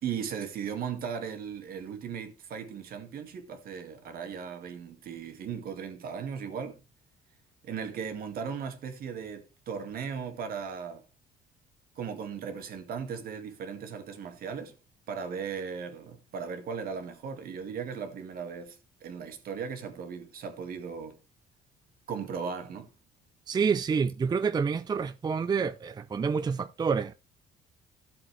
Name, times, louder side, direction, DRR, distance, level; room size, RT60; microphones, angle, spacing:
voice 1, 0.0-6.8 7.6-11.0 12.0-14.7 15.1-21.2 22.1-22.9, right 6 dB, 60° right, 2.2 m, -37 dB
voice 2, 23.5-27.1, right 5 dB, 25° right, 0.5 m, -28 dB
13.5 x 7.2 x 3.3 m
cardioid pair, 110°, 17 cm